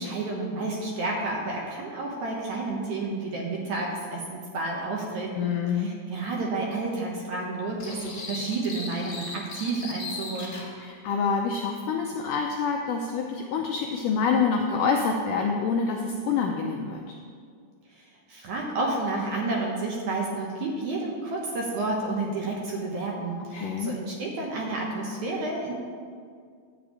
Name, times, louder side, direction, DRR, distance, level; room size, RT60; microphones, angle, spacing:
voice 1, 0.0-10.6 17.9-25.7, right 2 dB, 65° right, -1 dB, 2.1 m, -31 dB
voice 2, 5.3-5.9 10.8-17.2 23.5-23.9, left 5 dB, 85° left, 2 dB, 1.8 m, -27 dB
sound 1, 7.8-10.7, left 3 dB, 40° left, 1.3 m, -38 dB
10.5 x 5.0 x 8.3 m, 2.1 s
omnidirectional pair, 4.5 m